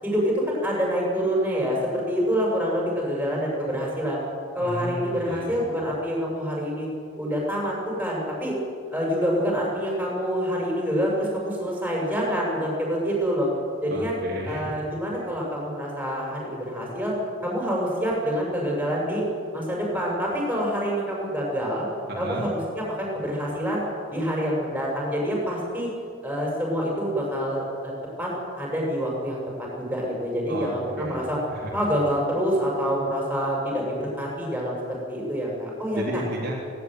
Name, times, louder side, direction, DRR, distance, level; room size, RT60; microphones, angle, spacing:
voice 1, 0.0-4.2 4.5-6.9 7.2-8.6 8.9-13.5 13.8-14.1 14.5-17.1 17.4-19.2 19.5-21.8 22.2-23.8 24.1-25.9 26.2-27.9 28.2-28.3 28.6-29.4 29.8-31.4 31.7-34.8 35.1-36.0, equal, 5° right, -3 dB, 7.0 m, -26 dB
voice 2, 4.6-5.6 13.9-14.7 22.1-22.5 30.5-30.7 31.0-31.2 31.5-31.9 35.9-36.5, right 1 dB, 50° right, -4 dB, 3.6 m, -32 dB
18.5 x 17.5 x 9.3 m, 2.5 s
head